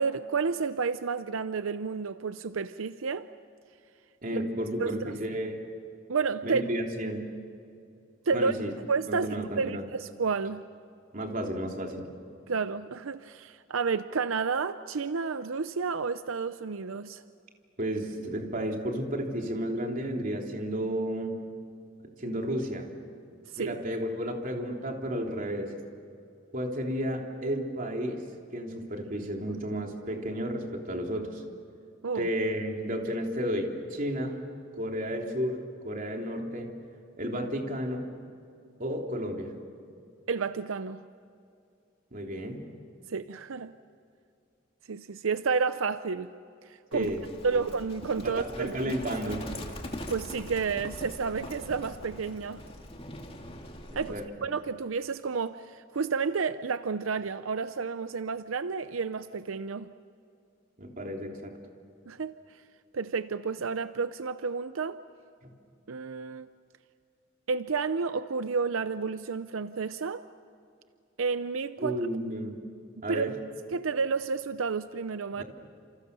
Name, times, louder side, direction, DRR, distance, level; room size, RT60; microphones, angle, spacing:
voice 1, 0.0-3.3 4.3-4.4 4.8-5.2 6.1-6.6 8.3-8.5 8.9-10.6 12.5-17.2 23.5-23.8 32.0-32.3 40.3-41.0 43.1-43.7 44.9-46.3 46.6-47.1 47.4-48.8 50.1-52.6 54.0-54.1 54.4-59.9 62.1-62.6 62.9-65.0 65.9-66.5 67.5-70.2 71.2-72.1 73.1-73.3 73.7-75.4, right 5 dB, 90° right, 0.6 m, -31 dB
voice 2, 4.2-5.7 6.4-7.2 8.3-8.7 9.1-9.8 11.1-12.1 17.8-21.4 22.2-22.9 23.6-25.7 26.5-28.2 28.5-31.4 32.1-34.4 34.7-35.6 35.8-36.7 37.2-38.1 38.8-39.5 42.1-42.7 46.9-47.2 47.5-47.6 48.2-49.4 54.1-54.3 60.8-61.5 65.4-65.5 71.8-72.6 73.0-73.3 75.3-75.4, equal, 45° right, 3.4 m, -32 dB
Livestock farm animals working animals, 46.9-54.3, left 1 dB, 30° left, 2.5 m, -42 dB
30.0 x 28.0 x 6.8 m
head